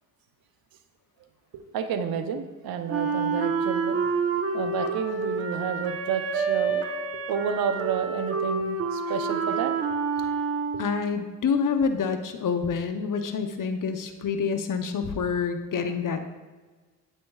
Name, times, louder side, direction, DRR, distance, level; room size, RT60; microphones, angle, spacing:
voice 1, 1.5-4.0 4.5-6.8 7.1-10.0, right 7 dB, 75° right, 9 dB, 0.8 m, -30 dB
Wind instrument woodwind instrument, 2.9-11.1, right 5 dB, 40° right, 1.0 m, -28 dB
voice 2, 10.8-16.3, left 5 dB, 60° left, 7 dB, 0.9 m, -27 dB
9.3 x 8.6 x 2.4 m, 1.3 s
cardioid pair, 60°, 36 cm